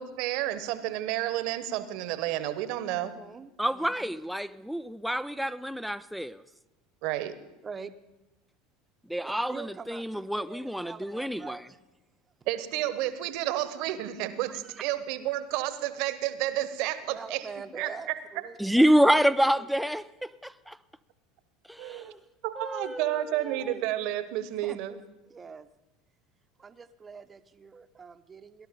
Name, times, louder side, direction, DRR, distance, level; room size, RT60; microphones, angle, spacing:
voice 1, 0.0-3.2 7.0-7.3 12.5-17.5 17.7-18.2 21.8-22.1 22.4-25.0, right 14 dB, 65° right, 1.1 m, -31 dB
voice 2, 3.0-4.1 7.6-7.9 9.2-11.8 14.5-14.8 17.1-19.7 24.6-25.7 26.6-28.7, right 5 dB, 25° right, 0.9 m, -44 dB
voice 3, 3.6-6.4 9.1-11.7 18.6-20.8 21.7-22.2 22.6-23.8, equal, ahead, 0.4 m, -27 dB
18.5 x 11.0 x 5.3 m
hypercardioid pair, 85°, 0 cm